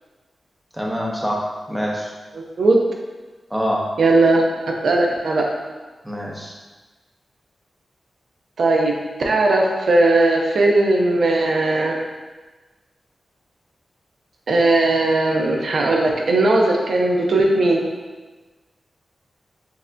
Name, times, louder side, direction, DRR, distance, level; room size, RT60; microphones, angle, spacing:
voice 1, 0.7-2.1 3.5-3.9 6.0-6.5, equal, 10° right, -2 dB, 0.7 m, -25 dB
voice 2, 4.0-4.4 4.8-5.4 8.6-8.9 9.2-12.0 14.5-17.8, right 2 dB, 80° right, 0 dB, 0.5 m, -17 dB
6.8 x 2.5 x 2.2 m, 1.3 s
wide cardioid pair, 85°, 0 cm